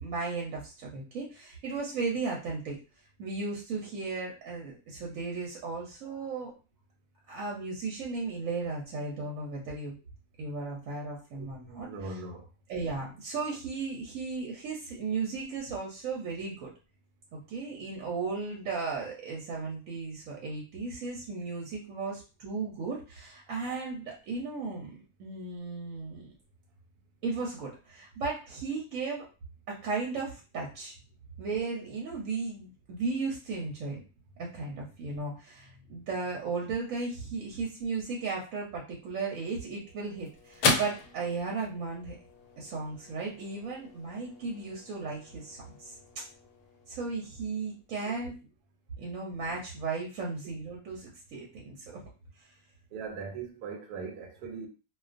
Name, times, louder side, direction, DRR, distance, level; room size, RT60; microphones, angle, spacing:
voice 1, 0.0-2.8 3.2-6.5 7.3-10.0 10.4-12.2 12.7-16.7 17.3-26.3 27.2-29.3 29.7-30.9 31.4-34.0 34.4-42.2 42.6-45.9 46.9-48.3 49.0-51.7, right 4 dB, 65° right, 1.0 m, -35 dB
voice 2, 11.4-12.4 52.9-54.7, right 4 dB, 85° right, 1.1 m, -40 dB
sound 1, 39.3-47.9, left 3 dB, 70° left, 0.9 m, -37 dB
2.3 x 2.3 x 2.4 m
omnidirectional pair, 1.6 m